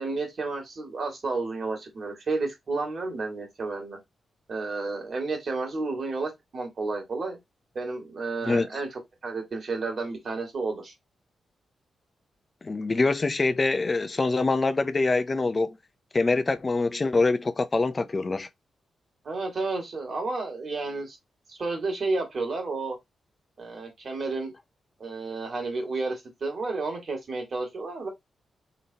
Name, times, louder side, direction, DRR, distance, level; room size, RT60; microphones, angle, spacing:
voice 1, 0.0-4.0 4.5-7.4 7.7-10.9 19.2-21.2 21.5-23.0 23.6-24.5 25.0-28.1, right 3 dB, 60° right, 2.3 m, -31 dB
voice 2, 12.6-15.8 16.1-18.5, left 3 dB, 35° left, 0.6 m, -24 dB
3.9 x 3.4 x 2.8 m
cardioid pair, 60°, 0 cm